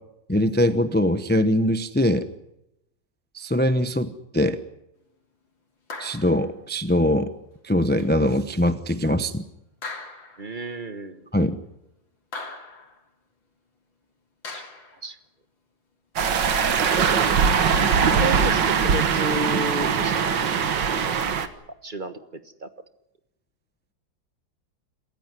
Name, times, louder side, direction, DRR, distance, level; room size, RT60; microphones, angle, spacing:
voice 1, 0.3-2.3 3.3-4.6 6.0-7.3 7.6-9.4 11.3-11.6, left 1 dB, 15° left, 10 dB, 0.3 m, -22 dB
sound 1, 5.9-6.5 8.0-8.2 9.8-10.5 12.3-13.0 14.4-15.0 16.5-17.1, left 3 dB, 75° left, 4.1 m, -39 dB
voice 2, 10.4-11.3 14.5-14.6 15.0-15.2 18.1-20.5 21.0-21.3 21.8-22.7, right 2 dB, 30° right, 10 dB, 1.2 m, -32 dB
sound 2, 16.2-21.5, right 6 dB, 70° right, 2.0 m, -21 dB
27.0 x 15.5 x 9.8 m, 0.86 s
omnidirectional pair, 2.1 m